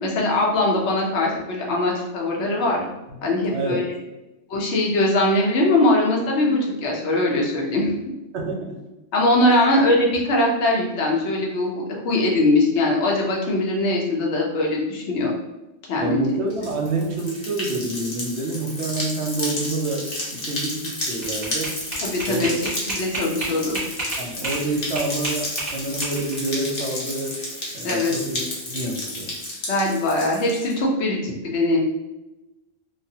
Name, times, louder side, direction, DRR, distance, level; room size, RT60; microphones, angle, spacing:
voice 1, 0.0-2.8 3.2-3.9 4.5-7.9 9.1-15.3 15.9-16.4 22.0-23.8 27.8-28.1 29.7-31.8, left 2 dB, 75° left, -1 dB, 0.9 m, -21 dB
voice 2, 8.3-8.8 16.0-20.1 20.3-21.8 22.3-22.6 24.2-27.4 27.7-28.4 28.7-29.3, right 2 dB, 70° right, -1 dB, 0.9 m, -28 dB
sound 1, 16.5-30.7, left 1 dB, 40° left, 0.7 m, -32 dB
sound 2, 20.8-24.6 25.0-26.5, right 2 dB, 40° right, 1.3 m, -30 dB
3.2 x 2.0 x 2.7 m, 1.0 s
omnidirectional pair, 1.2 m